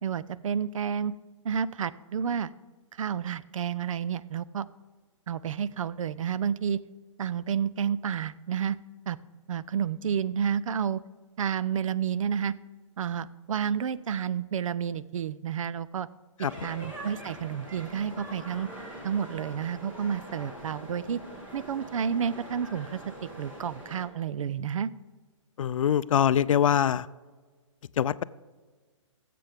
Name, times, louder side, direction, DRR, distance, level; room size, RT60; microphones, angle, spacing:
voice 1, 0.0-1.1 1.4-2.5 3.0-4.7 5.3-6.8 7.2-8.8 9.1-9.2 9.5-11.0 11.4-12.5 13.0-16.1 16.6-18.7 19.0-21.2 21.5-24.9, right 8 dB, 80° right, 17 dB, 0.5 m, -30 dB
sound 1, 16.4-24.1, right 1 dB, 10° right, 1.3 m, -43 dB
voice 2, 25.6-27.1 28.0-28.2, left 9 dB, 90° left, 17 dB, 0.4 m, -23 dB
16.5 x 7.7 x 3.5 m, 1.4 s
hypercardioid pair, 170°, 17 cm